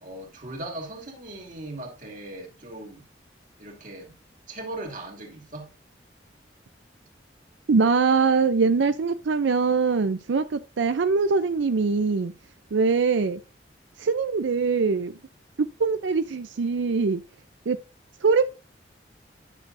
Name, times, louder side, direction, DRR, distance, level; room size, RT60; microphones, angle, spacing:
voice 1, 0.0-3.0 3.6-4.1 4.5-5.7, right 1 dB, 45° right, 2.5 m, -38 dB
voice 2, 7.7-12.3 12.7-13.4 14.0-15.1 15.6-17.2 17.7-17.8 18.2-18.5, right 4 dB, 90° right, 0.5 m, -22 dB
10.5 x 6.7 x 2.6 m
head